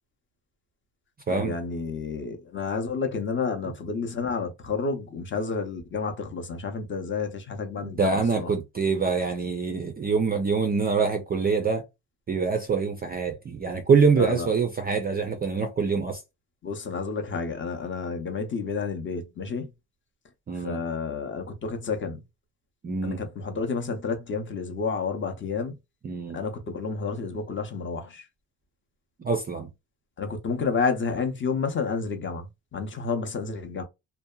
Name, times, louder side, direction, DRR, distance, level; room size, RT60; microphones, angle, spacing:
voice 1, 1.3-8.5 14.2-14.5 16.6-19.7 20.6-22.2 23.0-25.7 26.3-28.2 30.2-33.8, left 4 dB, 30° left, 0.5 m, -30 dB
voice 2, 7.8-11.8 12.3-16.2 20.5-20.8 22.8-23.2 26.0-26.4 29.2-29.7, right 5 dB, 25° right, 0.3 m, -25 dB
2.7 x 2.1 x 2.2 m
cardioid pair, 130°, 42 cm